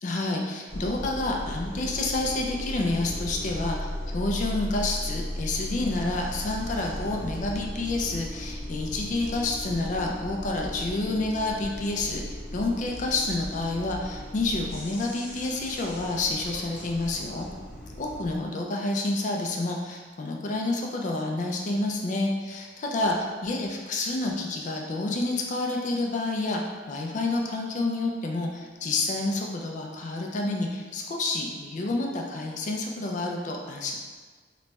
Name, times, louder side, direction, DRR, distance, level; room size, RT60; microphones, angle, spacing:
voice 1, 0.0-17.5 18.0-26.6 26.9-34.0, left 2 dB, 45° left, 0 dB, 0.4 m, -29 dB
sound 1, 0.7-18.4, equal, 80° left, 0.9 m, -36 dB
3.0 x 2.2 x 4.0 m, 1.5 s
head